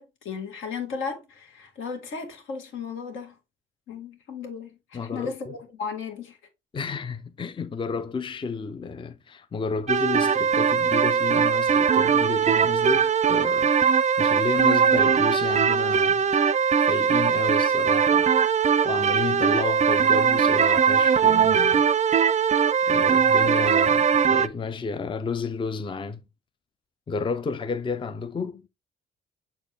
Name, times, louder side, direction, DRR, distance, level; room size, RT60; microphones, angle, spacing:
voice 1, 0.0-3.4 3.9-6.4, left 5 dB, 80° left, 2.0 m, -35 dB
voice 2, 4.9-5.5 6.7-13.7 14.0-16.2 16.8-18.3 18.8-21.9 22.9-26.2 27.1-28.6, left 4 dB, 25° left, 0.5 m, -31 dB
sound 1, 9.9-24.5, right 7 dB, 35° right, 0.5 m, -20 dB
6.5 x 4.2 x 3.5 m
cardioid pair, 90°, 20 cm